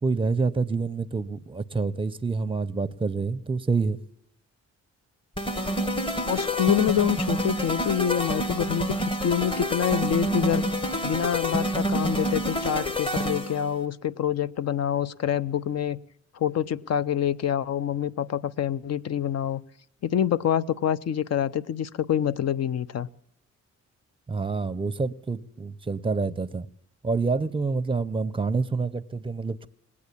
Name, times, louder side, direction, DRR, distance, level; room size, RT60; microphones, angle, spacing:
voice 1, 0.0-4.0 24.3-26.7 27.0-29.7, right 4 dB, 15° right, 0.6 m, -27 dB
sound 1, 5.4-13.7, equal, 15° left, 1.2 m, -28 dB
voice 2, 6.3-8.9 9.2-10.6 11.0-16.0 16.3-19.6 20.0-23.1, left 9 dB, 60° left, 0.6 m, -26 dB
20.0 x 8.5 x 8.4 m
cardioid pair, 80°, 30 cm